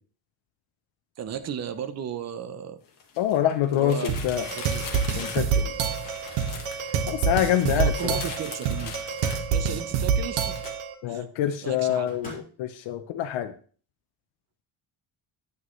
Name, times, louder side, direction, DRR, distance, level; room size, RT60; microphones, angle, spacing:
voice 1, 1.2-2.8 3.7-4.2 4.5-4.8 5.5-5.7 7.7-8.9 9.5-10.6 11.1-11.3 11.6-12.1, right 8 dB, 35° right, 10 dB, 0.7 m, -35 dB
sound 1, 1.3-1.4 2.9-10.1 10.5-10.7, left 5 dB, 45° left, 1.7 m, -40 dB
voice 2, 3.2-4.5 5.1-5.7 7.1-8.2 11.0-13.5, left 11 dB, 75° left, 7 dB, 0.8 m, -26 dB
sound 2, 4.1-10.9, right 6 dB, 85° right, 1.3 m, -27 dB
Microwave oven, 8.5-9.5 12.1-12.7, equal, 15° left, 3.7 m, -45 dB
9.5 x 8.6 x 3.1 m, 0.41 s
cardioid pair, 170°, 47 cm